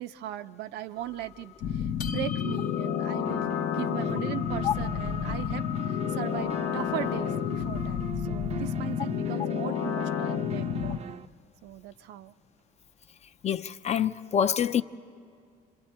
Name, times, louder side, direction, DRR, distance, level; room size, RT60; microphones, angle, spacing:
voice 1, 0.0-11.1 11.6-12.3, right 13 dB, 85° right, 0.6 m, -38 dB
sound 1, 1.0-8.1, left 12 dB, 55° left, 1.0 m, -41 dB
sound 2, 1.6-11.0, left 9 dB, 80° left, 0.7 m, -30 dB
sound 3, 3.3-11.3, right 7 dB, 40° right, 0.5 m, -42 dB
voice 2, 13.4-14.8, left 8 dB, 40° left, 0.5 m, -26 dB
26.5 x 26.5 x 4.4 m
cardioid pair, 110°, 17 cm